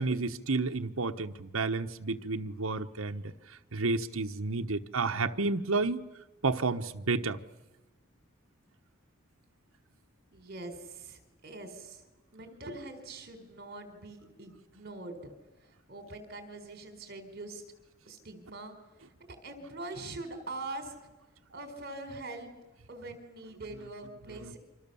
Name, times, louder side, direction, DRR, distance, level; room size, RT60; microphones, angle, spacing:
voice 1, 0.0-3.3 3.7-6.0 6.4-7.4, right 3 dB, 80° right, 5 dB, 1.1 m, -31 dB
voice 2, 10.3-12.0 12.3-15.3 15.6-17.6 18.1-18.7 19.2-21.1 21.5-22.5 22.9-24.6, right 2 dB, 50° right, 7 dB, 4.4 m, -43 dB
29.5 x 25.5 x 7.1 m, 1.1 s
head